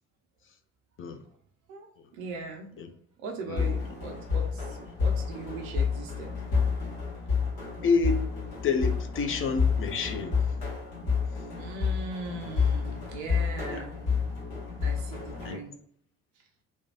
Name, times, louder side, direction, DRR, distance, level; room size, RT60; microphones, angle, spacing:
voice 1, 2.1-2.8 3.2-6.3 11.6-14.0 14.8-15.8 16.4-16.5, right 4 dB, 75° right, 2 dB, 0.6 m, -40 dB
sound 1, 3.6-15.5, left 5 dB, 75° left, 1.2 m, -29 dB
voice 2, 7.8-8.3 8.6-10.4 13.7-13.8 15.4-15.6, left 4 dB, 30° left, 7 dB, 0.5 m, -28 dB
3.1 x 2.1 x 2.7 m, 0.65 s
figure-of-eight pair, 50°, 42 cm